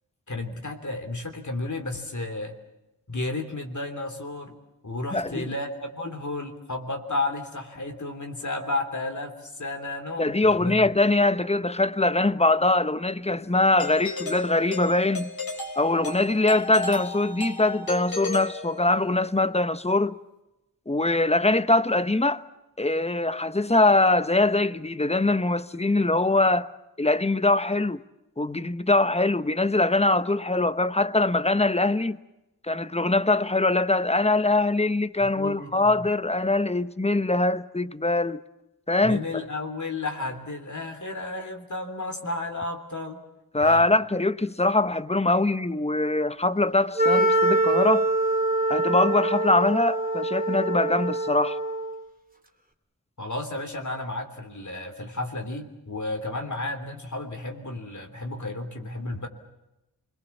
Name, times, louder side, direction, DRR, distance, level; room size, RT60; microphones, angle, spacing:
voice 1, 0.3-2.6 3.1-4.5 4.8-10.9 35.2-36.1 39.0-43.2 43.6-43.9 53.2-59.3, left 2 dB, 50° left, 3.4 m, -32 dB
voice 2, 5.1-5.4 10.2-15.3 15.8-20.2 20.9-22.4 22.8-26.7 27.0-28.0 28.4-32.2 32.7-38.4 38.9-39.2 43.5-48.1 48.7-51.6, left 2 dB, 15° left, 1.0 m, -22 dB
Doorbell, 13.8-19.2, left 3 dB, 70° left, 4.2 m, -35 dB
Wind instrument woodwind instrument, 47.0-52.1, right 2 dB, 25° right, 2.7 m, -24 dB
27.5 x 21.5 x 7.2 m
cardioid pair, 40°, 36 cm